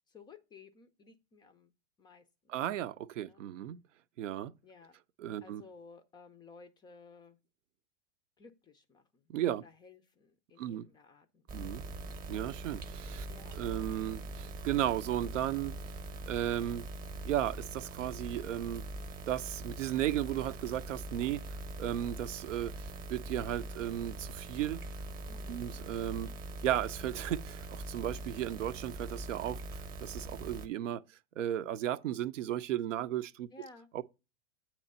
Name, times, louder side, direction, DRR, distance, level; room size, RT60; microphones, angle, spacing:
voice 1, 0.1-1.7 2.0-2.6 3.2-3.5 4.6-5.0 5.4-7.4 8.4-12.2 13.3-13.6 25.3-25.7 33.5-33.9, left 4 dB, 15° left, 0.3 m, -56 dB
voice 2, 2.5-3.8 4.2-4.5 5.2-5.6 9.3-9.6 10.6-10.8 11.5-11.8 12.3-13.3 13.5-15.8 16.3-16.9 17.2-18.9 19.3-24.8 25.5-26.3 26.6-29.6 30.0-31.0 31.4-33.5 33.9-34.0, right 12 dB, 90° right, 0.6 m, -35 dB
sound 1, 11.5-30.7, right 2 dB, 25° right, 0.7 m, -42 dB
8.3 x 3.0 x 5.3 m
hypercardioid pair, 120°, 36 cm